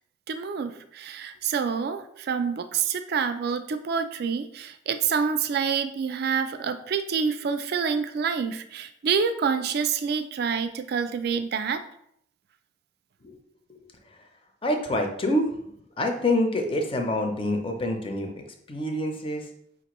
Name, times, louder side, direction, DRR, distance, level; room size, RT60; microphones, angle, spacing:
voice 1, 0.3-11.8, right 6 dB, 55° right, 9 dB, 0.3 m, -27 dB
voice 2, 14.6-15.7 16.0-18.3 18.7-19.4, left 1 dB, 30° left, 3 dB, 0.5 m, -26 dB
5.2 x 2.5 x 2.9 m, 0.71 s
head